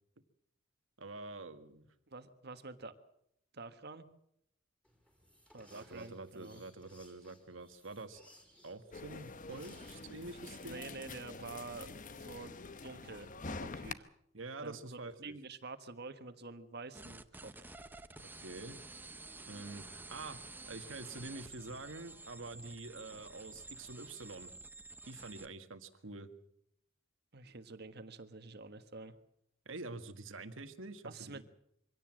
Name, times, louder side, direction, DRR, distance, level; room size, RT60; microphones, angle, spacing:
voice 1, 1.0-1.9 5.7-8.2 8.6-10.9 14.3-15.4 18.2-18.8 19.5-20.4 20.7-24.5 25.1-26.3 29.7-31.4, right 3 dB, 75° right, 9 dB, 1.7 m, -47 dB
voice 2, 2.1-2.9 3.5-4.1 5.5-6.6 10.6-12.5 12.8-13.3 13.6-14.1 14.6-17.7 27.3-29.1 31.0-31.4, right 3 dB, 55° right, 10 dB, 1.5 m, -48 dB
sound 1, 4.8-11.2, equal, 5° left, 4.3 m, -63 dB
sound 2, 8.9-13.9, left 3 dB, 40° left, 0.9 m, -46 dB
sound 3, 16.9-25.5, right 3 dB, 10° right, 0.8 m, -51 dB
24.0 x 17.0 x 7.6 m, 0.75 s
head